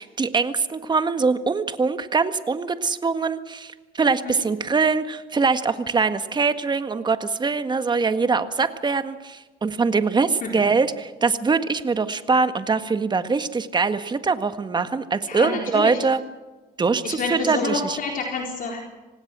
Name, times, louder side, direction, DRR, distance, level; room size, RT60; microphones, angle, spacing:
voice 1, 0.0-16.2 16.8-18.0, right 4 dB, 25° right, 10 dB, 1.7 m, -23 dB
voice 2, 15.3-16.0 17.0-18.8, left 3 dB, 55° left, 1 dB, 4.2 m, -28 dB
26.0 x 18.5 x 6.2 m, 1.2 s
cardioid pair, 110°, 17 cm